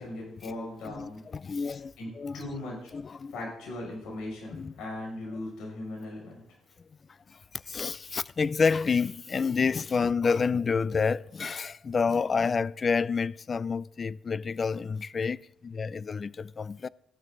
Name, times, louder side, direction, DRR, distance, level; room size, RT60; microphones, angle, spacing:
voice 1, 0.0-1.2 1.6-2.9 3.3-6.4, left 1 dB, 85° left, 6.4 m, -39 dB
voice 2, 0.9-2.4 2.9-3.3 4.5-4.7 7.5-16.9, left 5 dB, 40° left, 0.4 m, -29 dB
14.0 x 12.5 x 3.9 m
cardioid pair, 90°, 0 cm